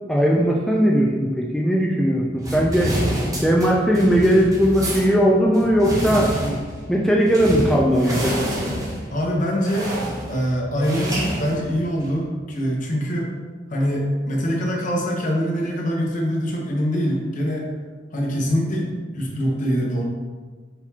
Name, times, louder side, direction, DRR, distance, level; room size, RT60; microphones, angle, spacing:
voice 1, 0.1-2.9 3.4-6.3 6.9-8.4, equal, ahead, -3 dB, 0.3 m, -18 dB
sound 1, 2.4-12.2, equal, 20° right, 0.8 m, -28 dB
voice 2, 9.1-9.9 10.3-13.3 13.7-17.7 18.1-20.0, equal, 45° left, -2 dB, 0.9 m, -24 dB
4.4 x 3.9 x 2.8 m, 1.4 s
head